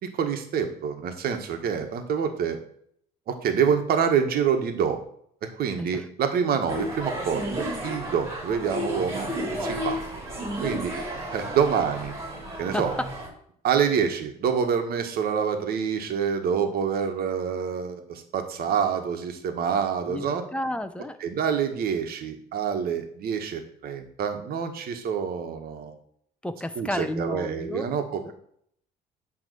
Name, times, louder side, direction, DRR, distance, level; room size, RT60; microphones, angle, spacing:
voice 1, 0.1-2.6 3.3-5.0 5.6-9.3 9.6-10.0 10.6-10.9 11.3-12.1 12.6-12.9 13.6-20.4 21.2-26.0 26.8-28.3, right 7 dB, 65° right, 6 dB, 1.5 m, -26 dB
sound 1, 6.7-13.3, equal, 15° right, 3.0 m, -32 dB
voice 2, 12.7-13.1 20.1-21.2 26.4-27.9 28.2-28.3, left 1 dB, 5° left, 10 dB, 0.7 m, -32 dB
9.3 x 3.4 x 6.8 m, 0.66 s
cardioid pair, 110°, 17 cm